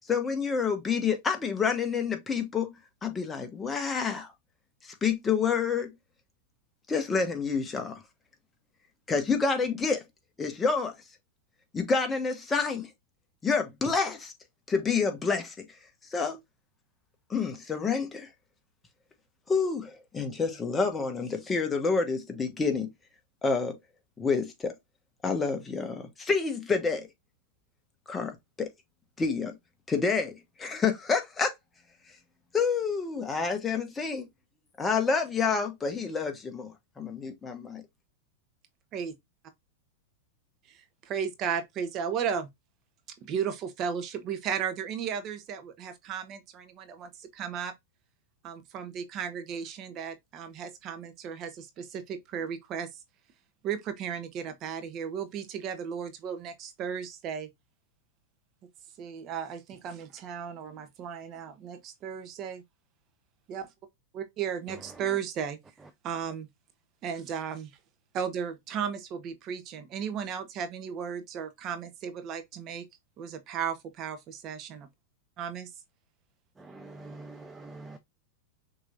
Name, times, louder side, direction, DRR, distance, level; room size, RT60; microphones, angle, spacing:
voice 1, 0.1-2.7 3.0-4.3 4.8-5.9 6.9-8.0 9.1-10.0 10.4-10.9 11.7-12.9 13.4-14.3 14.7-15.6 16.1-16.4 17.3-18.3 19.5-22.9 23.4-23.8 24.2-24.7 25.2-27.1 28.1-28.7 29.2-29.6 29.9-30.3 30.6-31.5 32.5-34.3 34.8-37.8, left 5 dB, 15° left, 1.3 m, -28 dB
voice 2, 40.7-42.5 43.2-47.7 48.4-53.0 53.6-57.5 59.0-62.6 63.5-63.7 64.1-65.6 66.0-66.5 67.0-67.7 68.1-72.8 73.2-74.9 75.4-75.7, right 7 dB, 40° right, 1.2 m, -35 dB
voice 3, 76.6-78.0, right 2 dB, 15° right, 0.6 m, -45 dB
6.1 x 3.1 x 2.5 m
hypercardioid pair, 120°, 0 cm